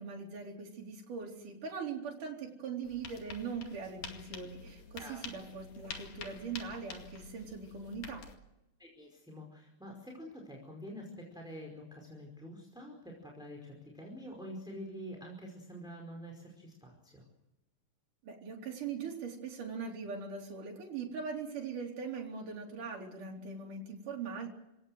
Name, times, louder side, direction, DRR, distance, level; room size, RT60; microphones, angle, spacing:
voice 1, 0.0-8.2 18.2-24.5, right 5 dB, 65° right, 0 dB, 5.3 m, -41 dB
sound 1, 2.8-8.4, left 5 dB, 70° left, 3.8 m, -48 dB
voice 2, 8.8-17.3, equal, ahead, 0 dB, 4.8 m, -47 dB
29.0 x 18.0 x 7.9 m, 0.93 s
omnidirectional pair, 4.0 m